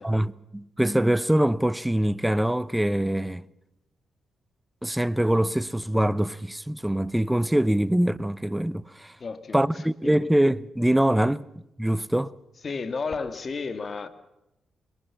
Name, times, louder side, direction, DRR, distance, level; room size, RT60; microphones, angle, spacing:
voice 1, 0.0-3.4 4.8-9.1 9.5-11.5 11.8-12.3, right 1 dB, 5° right, 0.7 m, -24 dB
voice 2, 9.2-10.1 12.6-14.1, left 4 dB, 45° left, 2.0 m, -33 dB
22.0 x 20.5 x 7.1 m
supercardioid pair, 60°, 0 cm